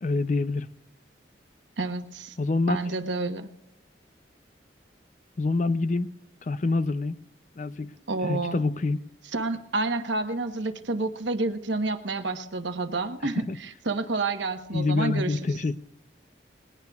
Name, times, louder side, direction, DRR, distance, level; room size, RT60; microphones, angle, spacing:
voice 1, 0.0-0.7 2.4-2.8 5.4-6.1 6.4-7.2 7.6-7.9 8.3-9.0 13.5-13.6 14.7-15.8, left 3 dB, 40° left, 0.4 m, -26 dB
voice 2, 1.8-2.4 2.7-3.5 8.1-8.6 9.3-15.6, right 3 dB, 80° right, 1.0 m, -29 dB
20.0 x 19.0 x 2.3 m
head